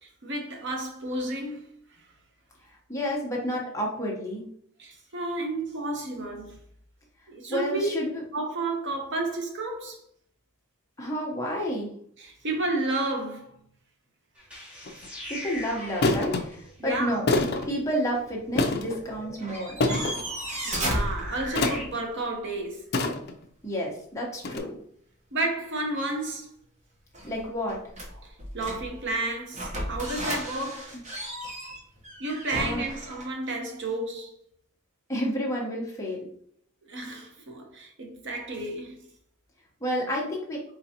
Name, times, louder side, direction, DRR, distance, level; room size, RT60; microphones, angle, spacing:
voice 1, 0.0-1.7 4.8-6.6 7.3-7.9 8.3-10.0 12.2-13.5 16.8-17.3 20.6-23.0 25.3-26.5 28.2-30.9 32.2-34.3 36.9-39.1 40.2-40.3, right 2 dB, 55° right, 0.9 m, -32 dB
voice 2, 2.9-4.4 7.5-8.2 11.0-11.9 15.3-17.2 17.7-19.8 23.6-24.8 27.2-27.8 32.5-32.9 35.1-36.3 39.8-40.6, equal, 15° left, 1.0 m, -30 dB
sound 1, 14.4-21.8, left 1 dB, 5° right, 1.1 m, -43 dB
sound 2, 14.9-15.1 16.0-16.4 17.3-17.7 18.6-19.0 19.8-20.2 21.6-22.0 22.9-23.4 24.4-24.6, left 2 dB, 45° left, 0.5 m, -25 dB
sound 3, 15.8-16.5 16.9-17.0 19.1-19.2 19.4-21.9 27.1-29.1 29.5-33.3, right 1 dB, 35° right, 1.0 m, -34 dB
4.4 x 4.0 x 2.9 m
head